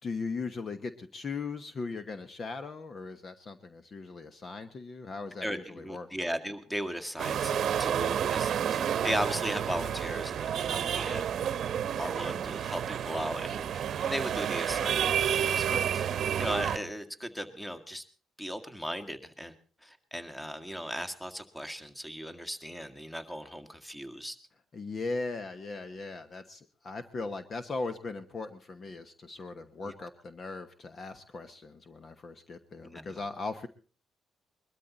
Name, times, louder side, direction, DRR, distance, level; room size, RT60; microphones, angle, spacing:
voice 1, 0.0-6.1 24.7-33.7, left 3 dB, 45° left, 10 dB, 1.1 m, -38 dB
voice 2, 5.4-11.3 12.0-18.0 18.4-19.5 19.8-24.4 29.8-29.9 32.8-33.2, equal, 10° left, 9 dB, 1.9 m, -37 dB
sound 1, 7.2-16.8, right 9 dB, 65° right, 0.9 m, -30 dB
21.5 x 13.0 x 4.1 m, 0.37 s
cardioid pair, 90°, 0 cm